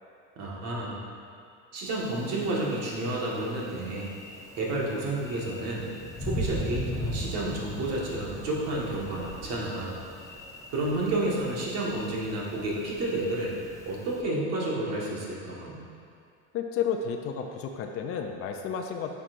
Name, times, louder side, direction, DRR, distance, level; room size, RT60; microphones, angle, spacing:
voice 1, 0.4-1.0 1.7-4.1 4.5-5.9 6.2-10.0 10.7-13.6 13.8-15.8, right 2 dB, 50° right, -4 dB, 1.7 m, -30 dB
Thunder, 1.9-14.2, equal, 10° left, 0.8 m, -39 dB
voice 2, 16.5-19.1, left 7 dB, 45° left, 4 dB, 0.6 m, -31 dB
9.3 x 5.8 x 2.6 m, 2.3 s
supercardioid pair, 115°, 33 cm